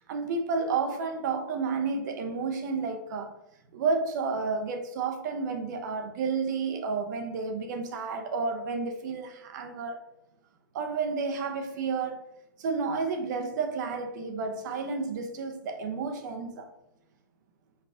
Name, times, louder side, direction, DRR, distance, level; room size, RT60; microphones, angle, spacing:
voice 1, 0.1-3.4 3.7-10.0 10.7-12.2 12.6-16.7, right 4 dB, 55° right, 0.7 m, -31 dB
5.5 x 2.3 x 3.7 m
hypercardioid pair, 125°, 12 cm